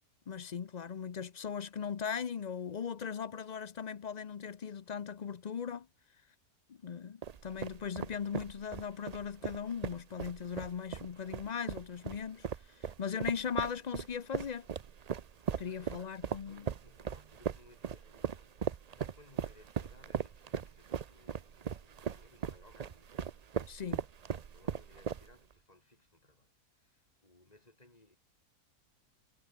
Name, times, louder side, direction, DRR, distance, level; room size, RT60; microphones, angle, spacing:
voice 1, 0.3-5.9 6.7-14.7 15.6-16.7 23.7-24.0, left 7 dB, 50° left, 0.5 m, -39 dB
sound 1, 7.2-25.5, right 7 dB, 70° right, 0.3 m, -38 dB
voice 2, 15.2-16.2 16.5-28.2, left 2 dB, 25° left, 4.5 m, -64 dB
omnidirectional pair, 1.6 m